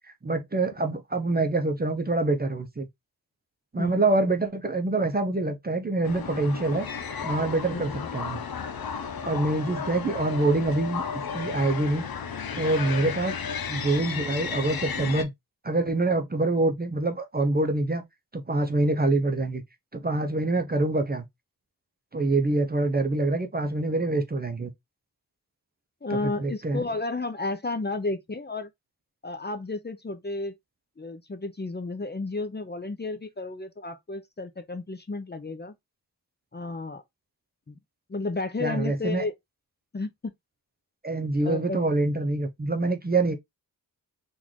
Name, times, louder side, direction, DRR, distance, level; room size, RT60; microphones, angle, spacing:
voice 1, 0.2-2.9 3.7-6.9 7.2-8.4 9.2-11.0 11.3-12.1 12.5-13.3 13.7-15.3 15.6-18.0 18.3-19.6 19.9-21.3 22.1-24.7 26.1-26.8 38.6-39.2 41.0-43.3, right 2 dB, 25° right, 0.6 m, -25 dB
sound 1, 6.0-15.2, left 6 dB, 85° left, 0.7 m, -33 dB
voice 2, 7.7-8.1 13.0-13.1 26.0-28.7 29.2-30.5 31.0-35.7 36.5-37.0 37.7-37.8 38.1-39.3 39.9-40.3 41.4-41.8, left 3 dB, 30° left, 0.6 m, -32 dB
3.8 x 2.5 x 3.0 m
wide cardioid pair, 85°, 35 cm